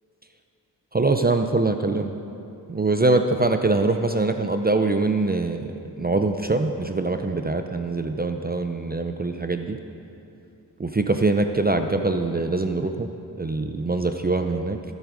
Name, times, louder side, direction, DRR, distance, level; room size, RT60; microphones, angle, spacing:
voice 1, 0.9-2.1 2.7-9.8 10.8-13.1 13.4-14.8, right 3 dB, 25° right, 6 dB, 0.6 m, -23 dB
23.0 x 8.2 x 5.2 m, 2.7 s
wide cardioid pair, 105°, 39 cm